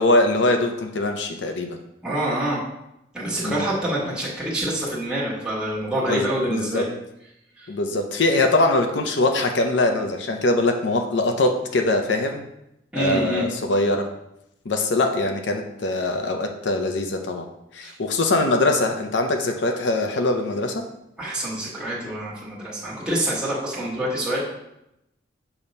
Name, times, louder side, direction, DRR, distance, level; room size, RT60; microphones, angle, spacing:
voice 1, 0.0-1.8 3.4-3.7 6.0-6.9 7.7-12.5 12.9-14.1 14.6-20.8, left 2 dB, 75° left, 4 dB, 0.6 m, -22 dB
voice 2, 2.0-2.6 3.1-6.9 7.6-7.7 12.9-13.5 17.8-17.9 21.2-24.6, right 1 dB, 5° right, -7 dB, 1.6 m, -26 dB
6.9 x 2.8 x 5.3 m, 0.84 s
head